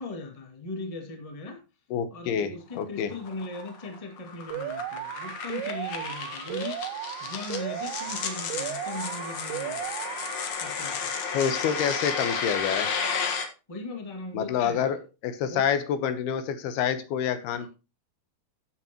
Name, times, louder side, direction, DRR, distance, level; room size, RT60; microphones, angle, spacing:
voice 1, 0.0-1.6 2.1-6.8 7.2-9.9 10.6-11.0 13.7-14.9 15.4-15.7 17.6-17.7, left 2 dB, 15° left, 3 dB, 1.3 m, -38 dB
voice 2, 1.9-3.1 11.3-12.9 14.3-17.7, left 8 dB, 80° left, 11 dB, 2.9 m, -27 dB
sound 1, 2.7-13.5, left 5 dB, 55° left, 2.3 m, -33 dB
Alarm, 4.5-10.5, right 12 dB, 80° right, 2.8 m, -35 dB
14.5 x 8.0 x 3.0 m, 0.30 s
omnidirectional pair, 4.6 m